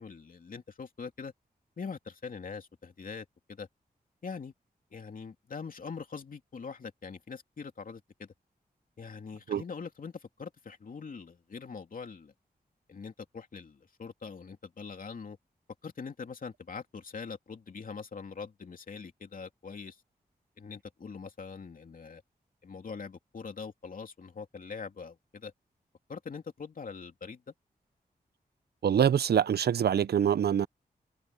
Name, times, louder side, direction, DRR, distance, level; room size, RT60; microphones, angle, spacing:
voice 1, 0.0-1.3 1.8-3.7 4.2-4.5 4.9-8.3 9.0-12.3 12.9-15.4 15.8-20.0 20.6-22.2 22.6-25.5 26.1-27.5, left 5 dB, 60° left, 2.7 m, -43 dB
voice 2, 28.8-30.7, right 8 dB, 85° right, 0.6 m, -25 dB
wide cardioid pair, 95°, 16 cm